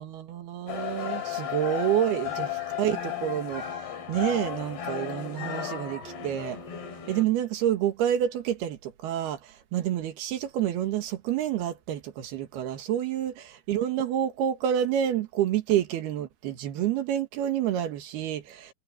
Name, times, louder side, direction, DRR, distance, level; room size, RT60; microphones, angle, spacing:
voice 1, 0.0-6.6 7.1-18.7, right 11 dB, 75° right, 3.6 m, -28 dB
sound 1, 0.7-7.3, left 10 dB, 85° left, 5.6 m, -34 dB
omnidirectional pair, 4.6 m